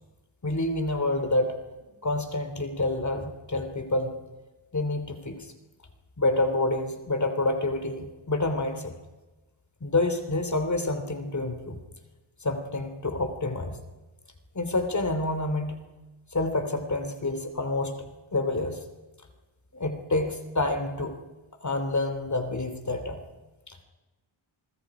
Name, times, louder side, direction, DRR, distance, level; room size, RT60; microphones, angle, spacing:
voice 1, 0.4-1.6 2.0-4.2 4.7-5.5 6.2-8.9 9.8-11.8 12.4-13.8 14.5-15.8 16.3-17.9 18.3-18.8 19.7-21.2 21.6-23.2 23.7-23.8, left 2 dB, 35° left, 7 dB, 3.0 m, -28 dB
26.5 x 22.0 x 5.0 m, 1.2 s
cardioid pair, 75°, 49 cm